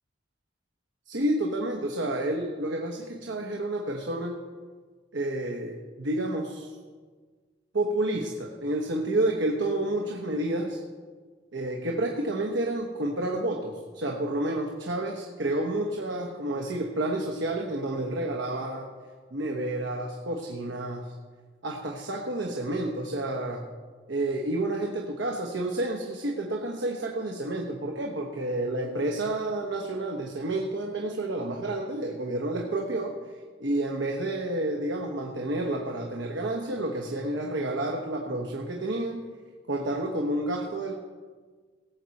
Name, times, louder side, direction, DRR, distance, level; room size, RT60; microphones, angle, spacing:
voice 1, 1.1-4.4 5.1-6.8 7.7-10.8 11.5-18.9 19.3-21.1 21.6-23.7 24.1-33.2 33.6-39.2 39.7-40.9, right 1 dB, 80° right, 1 dB, 1.1 m, -30 dB
18.5 x 7.7 x 4.1 m, 1.5 s
head